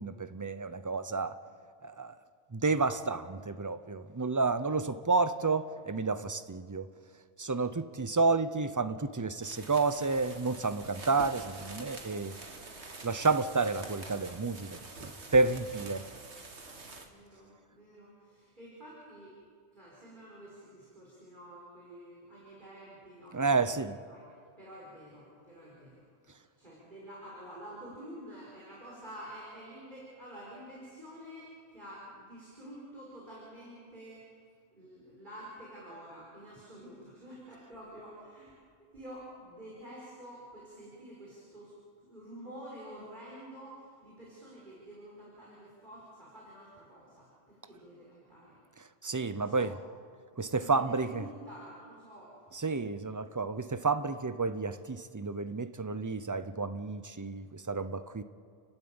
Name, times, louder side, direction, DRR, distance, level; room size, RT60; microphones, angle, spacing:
voice 1, 0.0-1.4 1.8-2.1 2.5-6.9 7.4-12.4 13.0-16.1 23.3-24.0 49.0-49.8 50.4-51.2 52.5-58.2, right 3 dB, 20° right, 0.5 m, -30 dB
sound 1, 9.3-17.0, right 3 dB, 70° right, 2.2 m, -46 dB
voice 2, 17.0-19.3 19.7-24.2 24.6-34.2 34.7-38.5 38.9-48.6 49.3-49.7 50.5-52.4, right 1 dB, 40° right, 5.1 m, -49 dB
30.0 x 12.5 x 8.8 m
omnidirectional pair, 1.2 m